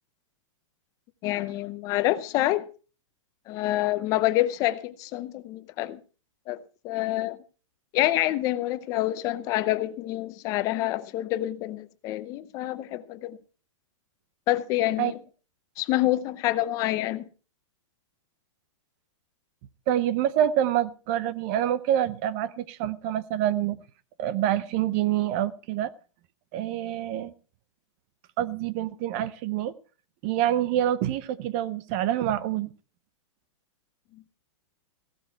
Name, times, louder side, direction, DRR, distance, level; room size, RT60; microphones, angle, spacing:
voice 1, 1.2-2.6 3.5-6.0 6.5-7.4 7.9-13.4 14.5-15.2 15.8-17.2, left 15 dB, 20° left, 0.6 m, -27 dB
voice 2, 19.9-23.8 24.2-25.9 26.5-27.3 28.4-29.7 30.2-32.7, right 11 dB, 25° right, 0.6 m, -26 dB
16.5 x 12.0 x 4.5 m
hypercardioid pair, 165°, 16 cm